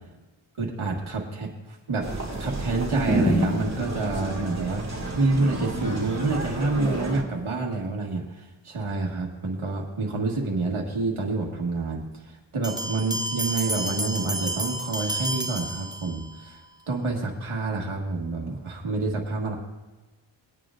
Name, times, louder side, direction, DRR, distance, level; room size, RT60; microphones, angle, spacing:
voice 1, 0.6-1.5 1.9-2.1 2.4-16.6 16.9-19.6, right 3 dB, 85° right, -1 dB, 1.7 m, -28 dB
sound 1, 2.0-7.2, right 1 dB, 35° right, 2.4 m, -29 dB
sound 2, 12.6-16.4, right 1 dB, 10° right, 0.9 m, -31 dB
20.0 x 9.6 x 2.5 m, 1.2 s
wide cardioid pair, 70°, 48 cm